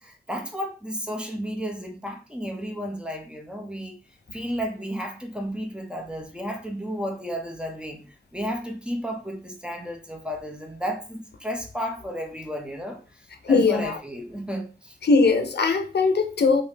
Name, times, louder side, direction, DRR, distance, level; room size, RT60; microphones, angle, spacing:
voice 1, 0.0-4.0 4.3-15.0, equal, 5° right, 0.8 m, -33 dB
voice 2, 13.4-14.0 15.0-16.6, left 4 dB, 85° left, 0.5 m, -20 dB
3.1 x 2.7 x 3.2 m
wide cardioid pair, 55°, 17 cm